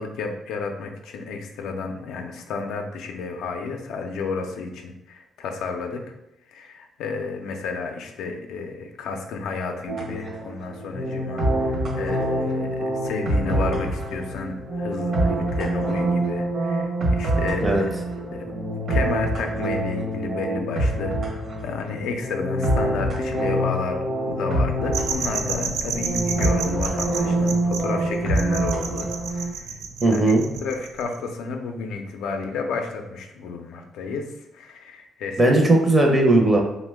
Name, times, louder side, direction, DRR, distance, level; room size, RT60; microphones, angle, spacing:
voice 1, 0.0-6.1 6.5-17.9 18.3-18.5 18.9-24.0 24.3-29.8 30.1-30.3 30.6-35.6, left 4 dB, 85° left, 3 dB, 0.4 m, -31 dB
sound 1, 9.9-29.5, right 1 dB, 55° right, 0.8 m, -25 dB
sound 2, 24.9-31.2, right 5 dB, 80° right, 0.3 m, -31 dB
voice 2, 30.0-30.4 35.4-36.6, right 2 dB, 20° right, 1 dB, 0.5 m, -17 dB
2.9 x 2.1 x 3.3 m, 0.85 s
cardioid pair, 90°, 0 cm